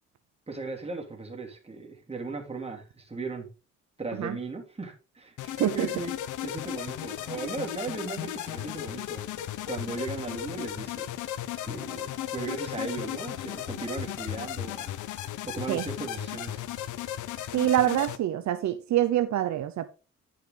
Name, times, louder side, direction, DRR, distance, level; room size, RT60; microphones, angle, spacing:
voice 1, 0.5-3.5 4.0-6.1 6.4-9.2 9.7-11.1 11.6-14.9 15.5-16.6, right 3 dB, 20° right, 2.8 m, -37 dB
sound 1, 5.4-18.2, left 12 dB, 80° left, 0.8 m, -35 dB
voice 2, 17.5-19.9, right 12 dB, 65° right, 0.8 m, -25 dB
10.5 x 5.7 x 3.8 m
cardioid pair, 90°, 30 cm